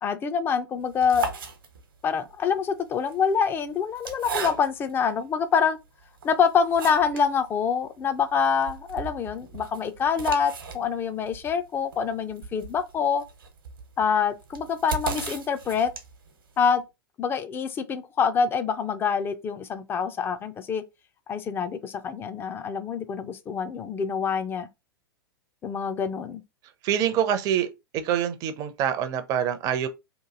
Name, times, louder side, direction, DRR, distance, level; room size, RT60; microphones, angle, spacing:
voice 1, 0.0-1.3 2.0-5.8 6.2-13.2 14.0-15.9 16.6-16.8 17.2-20.8 21.3-24.7 25.6-26.4, left 6 dB, 20° left, 0.4 m, -26 dB
sound 1, 0.8-2.1 2.9-5.0 5.6-5.7 6.2-7.3 7.6-7.7 8.0-8.1 8.4-16.3, right 5 dB, 65° right, 1.0 m, -36 dB
voice 2, 26.8-27.7 27.9-29.9, right 9 dB, 30° right, 0.6 m, -25 dB
3.0 x 2.5 x 3.7 m
figure-of-eight pair, 100°, 12 cm